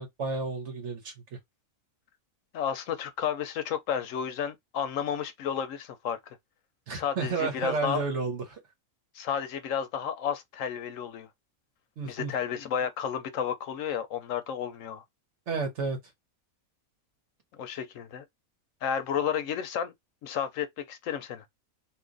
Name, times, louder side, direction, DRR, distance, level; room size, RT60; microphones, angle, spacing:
voice 1, 0.0-1.4 6.9-8.6 12.0-12.3 15.5-16.0, right 4 dB, 60° right, 1.2 m, -32 dB
voice 2, 2.5-6.2 6.9-8.0 9.1-11.3 12.1-15.0 17.6-18.2 18.8-19.9 20.2-21.4, left 8 dB, 70° left, 0.9 m, -32 dB
2.8 x 2.4 x 3.7 m
omnidirectional pair, 1.5 m